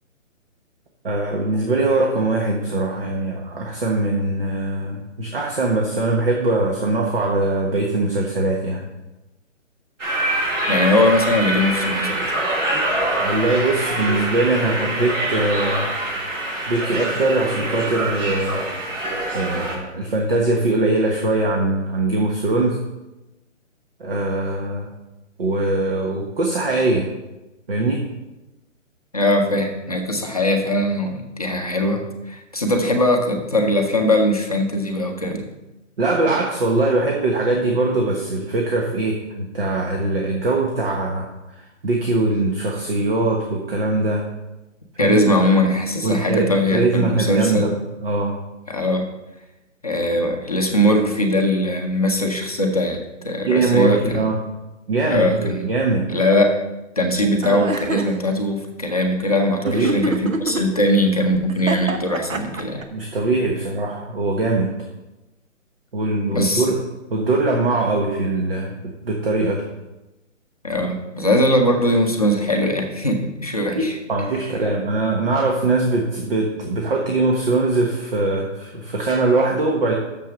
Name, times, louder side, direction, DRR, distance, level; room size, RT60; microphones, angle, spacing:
voice 1, 1.0-8.9 13.2-15.9 16.7-18.6 19.3-22.8 24.0-24.9 25.4-27.1 27.7-28.0 36.0-44.2 44.9-45.2 46.0-47.7 48.0-48.4 53.4-54.4 54.9-56.0 59.6-60.1 62.9-64.7 65.9-66.8 67.1-68.7 69.0-69.6 73.7-79.9, right 2 dB, 45° right, 0 dB, 1.3 m, -21 dB
sound 1, 10.0-19.8, right 1 dB, 65° right, 3.6 m, -24 dB
voice 2, 10.7-12.2 29.1-35.4 45.0-47.7 48.7-49.1 49.8-53.0 53.2-54.3 55.1-55.7 56.1-56.6 57.0-62.8 66.3-66.7 70.6-74.0, left 1 dB, 30° left, 2 dB, 0.7 m, -20 dB
sound 2, 57.4-58.1 59.7-60.6 61.5-62.8, right 2 dB, 90° right, 1.2 m, -24 dB
6.9 x 6.2 x 6.7 m, 1.0 s
hypercardioid pair, 175°, 39 cm